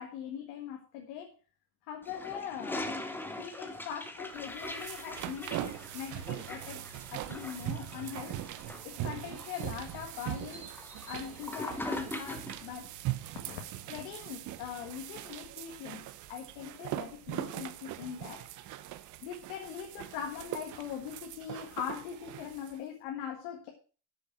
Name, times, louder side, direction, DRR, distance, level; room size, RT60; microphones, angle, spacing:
voice 1, 0.0-1.3 1.9-3.0 3.4-6.8 7.1-8.4 8.8-10.7 11.1-12.9 13.5-13.6 13.9-18.5 19.2-23.7, left 9 dB, 90° left, 2 dB, 1.8 m, -41 dB
Toilet flush, 2.0-12.7, left 2 dB, 5° left, 1.0 m, -42 dB
sound 1, 4.4-22.8, right 14 dB, 50° right, 0.8 m, -41 dB
sound 2, 8.2-12.2, right 3 dB, 20° right, 2.5 m, -57 dB
9.0 x 7.0 x 6.1 m, 0.37 s
cardioid pair, 150°, 38 cm